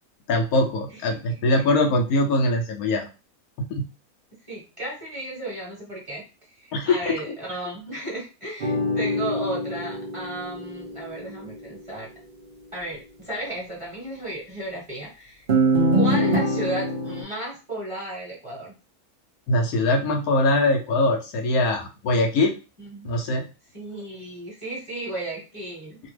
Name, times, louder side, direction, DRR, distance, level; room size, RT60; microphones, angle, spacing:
voice 1, 0.3-3.1 3.6-3.8 6.7-7.3 19.5-22.6 23.0-23.5, left 2 dB, 80° left, 2 dB, 1.1 m, -22 dB
voice 2, 4.5-6.2 6.6-12.1 12.7-15.4 15.9-18.8 22.8-23.1 23.7-26.0, right 1 dB, 25° right, -5 dB, 1.1 m, -34 dB
sound 1, 8.6-11.2 15.5-17.2, right 1 dB, 65° right, 0.5 m, -23 dB
2.8 x 2.2 x 3.1 m, 0.32 s
omnidirectional pair, 1.6 m